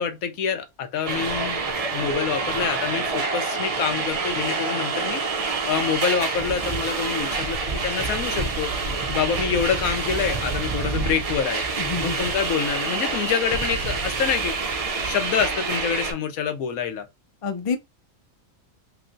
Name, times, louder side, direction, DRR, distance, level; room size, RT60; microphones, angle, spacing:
voice 1, 0.0-1.6 1.9-5.2 5.7-8.7 9.1-11.6 12.0-14.5 15.0-17.1, left 7 dB, 80° left, 1.1 m, -26 dB
sound 1, 1.0-16.1, right 4 dB, 50° right, 0.4 m, -27 dB
voice 2, 11.8-12.3 17.4-17.8, left 5 dB, 40° left, 0.4 m, -28 dB
3.2 x 3.1 x 2.5 m
omnidirectional pair, 1.5 m